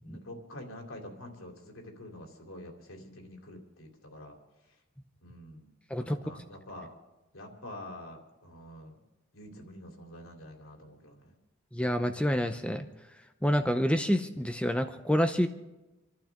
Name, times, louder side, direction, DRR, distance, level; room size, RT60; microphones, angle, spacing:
voice 1, 0.0-4.4 5.2-5.7 6.0-6.9 7.3-9.0 9.3-11.3, left 1 dB, 85° left, 2 dB, 3.2 m, -46 dB
voice 2, 11.7-12.9 13.4-15.5, equal, 5° left, 8 dB, 0.6 m, -27 dB
28.0 x 12.0 x 3.6 m, 1.1 s
head